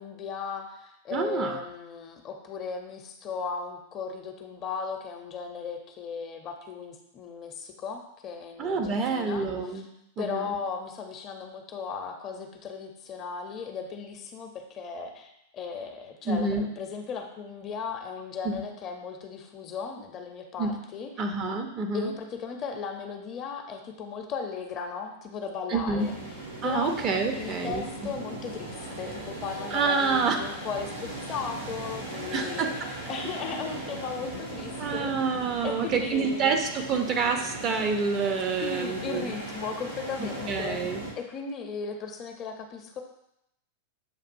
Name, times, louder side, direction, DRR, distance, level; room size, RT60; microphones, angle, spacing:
voice 1, 0.0-9.5 10.2-21.2 21.9-26.2 26.6-27.0 27.3-32.7 33.1-35.1 35.6-36.6 38.6-43.0, left 5 dB, 35° left, 3 dB, 0.7 m, -36 dB
voice 2, 1.1-1.6 8.6-9.8 10.2-10.5 16.2-16.6 18.4-18.6 20.6-20.8 21.2-22.1 25.7-26.1 26.6-28.1 29.7-30.4 32.3-32.7 34.8-39.4 40.2-41.0, right 4 dB, 35° right, 4 dB, 0.7 m, -28 dB
sound 1, 26.0-41.1, right 2 dB, 90° right, 1.4 m, -38 dB
7.4 x 2.6 x 2.6 m, 0.80 s
hypercardioid pair, 95°, 0 cm